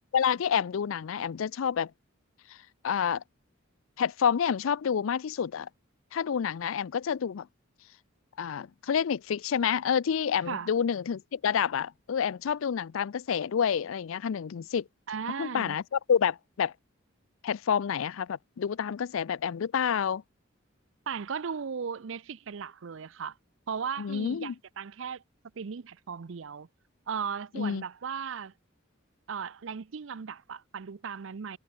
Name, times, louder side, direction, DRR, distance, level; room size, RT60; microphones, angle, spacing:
voice 1, 0.1-1.9 2.8-3.2 4.0-5.7 6.1-7.5 8.4-14.8 15.4-16.7 17.4-20.2 24.0-24.5 27.5-27.8, left 7 dB, 75° left, 0.4 m, -28 dB
voice 2, 15.1-15.8 21.1-23.3 23.7-25.2 25.6-26.7 27.1-28.5 29.3-31.6, right 6 dB, 65° right, 0.5 m, -36 dB
head